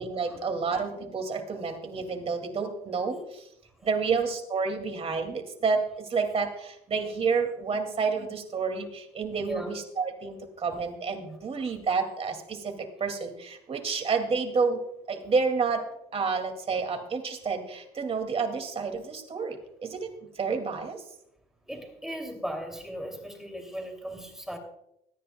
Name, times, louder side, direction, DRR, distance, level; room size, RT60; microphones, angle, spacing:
voice 1, 0.0-3.5 3.8-15.8 16.1-21.0, right 5 dB, 35° right, 5 dB, 2.2 m, -30 dB
voice 2, 9.4-9.7 21.7-24.6, equal, 5° right, 2 dB, 2.5 m, -37 dB
25.0 x 10.0 x 2.2 m, 0.79 s
cardioid pair, 110°, 17 cm